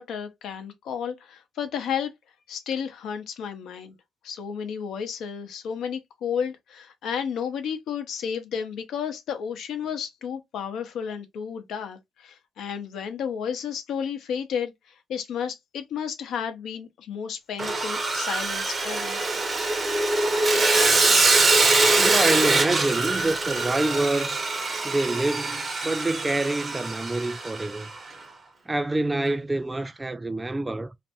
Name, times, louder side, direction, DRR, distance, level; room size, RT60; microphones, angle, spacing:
voice 1, 0.0-2.1 2.5-4.0 4.2-19.3, left 7 dB, 75° left, 0.7 m, -32 dB
Sawing, 17.6-27.8, right 3 dB, 40° right, 0.8 m, -23 dB
voice 2, 22.0-24.5 24.8-27.9 28.7-30.9, right 2 dB, 20° right, 0.3 m, -26 dB
2.5 x 2.2 x 2.8 m
supercardioid pair, 70°, 0 cm